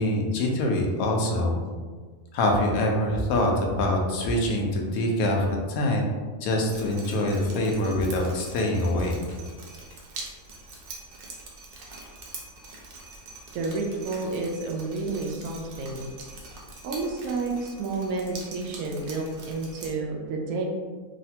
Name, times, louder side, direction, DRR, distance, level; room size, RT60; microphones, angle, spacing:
voice 1, 0.0-1.6 2.3-6.0 6.4-9.2, left 1 dB, 80° left, 0 dB, 1.0 m, -24 dB
Drip, 6.7-19.9, right 3 dB, 65° right, 0.6 m, -44 dB
voice 2, 13.5-16.1 16.8-20.6, right 3 dB, 90° right, 0 dB, 1.0 m, -30 dB
3.1 x 2.1 x 2.7 m, 1.5 s
omnidirectional pair, 1.5 m